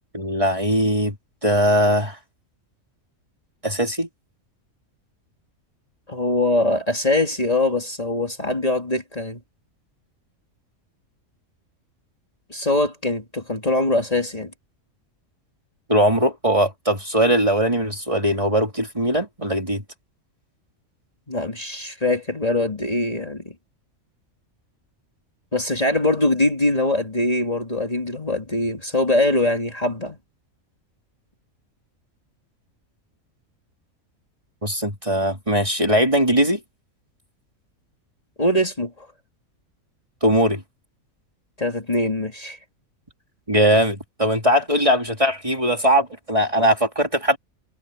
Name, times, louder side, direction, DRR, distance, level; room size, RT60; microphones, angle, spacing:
voice 1, 0.1-1.2 1.4-2.2 3.6-4.1 15.9-19.8 34.6-36.6 40.2-40.6 43.5-47.4, equal, 25° right, 3.0 m, -20 dB
voice 2, 6.1-9.4 12.5-14.5 21.3-23.5 25.5-30.2 38.4-39.1 41.6-42.6, left 1 dB, 25° left, 2.8 m, -22 dB
omnidirectional pair, 1.4 m